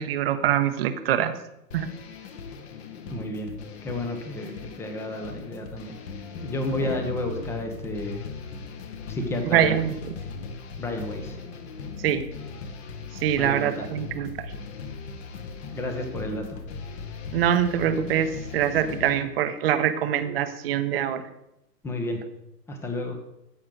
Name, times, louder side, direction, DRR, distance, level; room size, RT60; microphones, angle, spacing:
voice 1, 0.0-1.3 1.7-1.9 6.8-6.9 9.4-10.1 12.0-12.2 13.2-14.5 17.3-21.2, right 10 dB, 35° right, 10 dB, 0.9 m, -24 dB
sound 1, 1.7-19.2, left 5 dB, 40° left, 1.6 m, -39 dB
voice 2, 3.1-3.5 3.8-6.0 6.4-8.2 9.1-9.8 10.8-11.4 13.3-13.9 15.7-16.6 21.8-22.2 22.7-23.1, left 1 dB, 5° left, 5 dB, 0.8 m, -31 dB
14.0 x 8.6 x 3.9 m, 0.85 s
hypercardioid pair, 140°, 49 cm